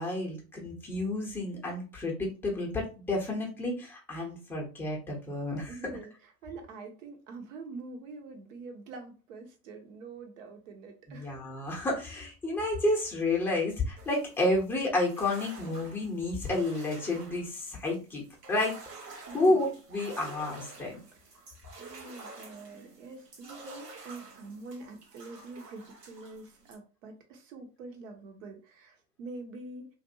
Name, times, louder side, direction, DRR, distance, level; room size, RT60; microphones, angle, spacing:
voice 1, 0.0-5.7 11.1-18.2 18.5-18.8 19.3-21.0, left 2 dB, 5° left, -2 dB, 0.8 m, -30 dB
voice 2, 5.7-11.4 19.3-19.6 21.1-29.9, right 3 dB, 55° right, 5 dB, 1.0 m, -45 dB
sound 1, 14.0-26.8, right 3 dB, 90° right, 1.0 m, -49 dB
2.5 x 2.5 x 2.7 m, 0.34 s
figure-of-eight pair, 105°, 47 cm